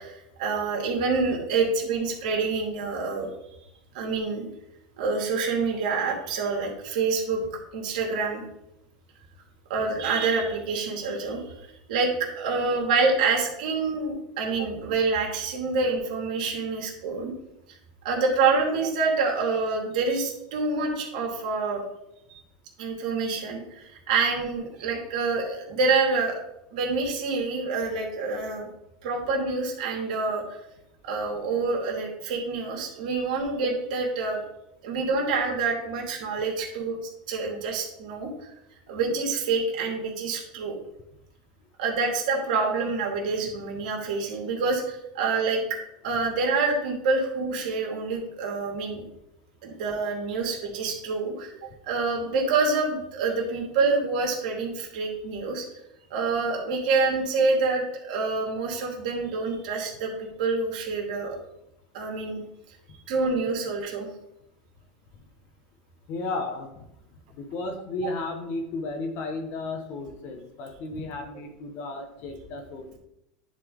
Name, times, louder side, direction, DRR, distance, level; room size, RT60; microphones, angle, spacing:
voice 1, 0.0-3.3 3.9-4.4 5.0-7.5 7.7-8.4 9.7-11.4 11.9-17.3 18.0-21.8 22.8-26.4 26.7-28.7 29.0-30.4 31.0-34.4 34.8-37.0 37.3-38.3 38.9-40.8 41.8-45.6 46.0-49.0 49.6-51.6 51.8-55.6 56.1-61.4 61.9-62.4 63.1-64.1, right 4 dB, 75° right, 0 dB, 2.4 m, -27 dB
voice 2, 66.1-66.8 67.3-73.0, left 2 dB, 50° left, 4 dB, 1.4 m, -34 dB
10.0 x 4.4 x 3.9 m, 0.84 s
supercardioid pair, 115°, 4 cm